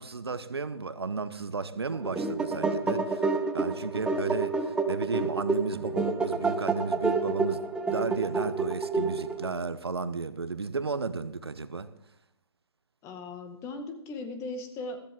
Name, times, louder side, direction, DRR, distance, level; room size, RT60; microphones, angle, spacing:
voice 1, 0.0-3.3 3.5-7.6 7.9-11.9, right 4 dB, 75° right, 1.0 m, -33 dB
sound 1, 1.9-9.5, right 3 dB, 5° right, 0.8 m, -29 dB
voice 2, 13.0-15.0, left 3 dB, 20° left, 1.7 m, -38 dB
14.5 x 14.0 x 3.7 m
figure-of-eight pair, 130°, 13 cm